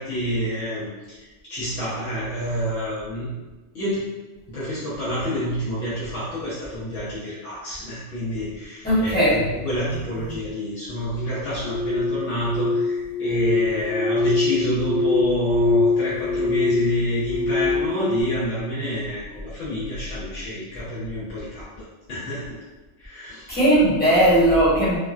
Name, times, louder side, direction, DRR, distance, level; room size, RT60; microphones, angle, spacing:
voice 1, 0.0-3.3 3.7-4.1 4.5-22.6 23.0-23.6, equal, 70° left, -11 dB, 1.3 m, -28 dB
voice 2, 8.8-9.4 23.5-25.0, right 1 dB, 10° left, -10 dB, 1.0 m, -18 dB
sound 1, 11.6-18.2, left 3 dB, 40° right, 0.8 m, -23 dB
3.5 x 2.2 x 2.4 m, 1.2 s
omnidirectional pair, 1.2 m